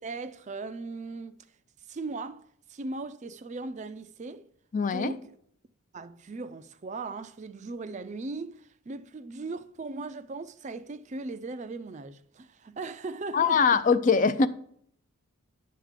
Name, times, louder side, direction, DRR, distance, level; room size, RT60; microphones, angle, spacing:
voice 1, 0.0-1.5 1.9-4.5 4.8-5.4 5.9-13.8, right 3 dB, 30° right, 0.4 m, -38 dB
voice 2, 4.7-5.1 13.3-14.5, left 5 dB, 35° left, 0.4 m, -22 dB
10.5 x 3.6 x 7.2 m
head